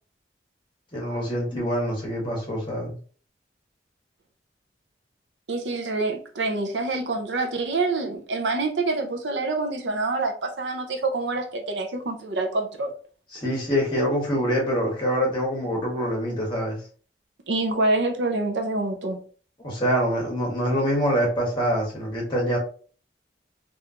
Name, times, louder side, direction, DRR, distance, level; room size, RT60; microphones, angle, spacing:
voice 1, 0.9-2.9 13.3-16.8 19.6-22.6, equal, 25° left, 1.5 m, -25 dB
voice 2, 5.5-12.9 17.5-19.2, right 3 dB, 85° right, 0.7 m, -26 dB
3.5 x 2.7 x 2.8 m
head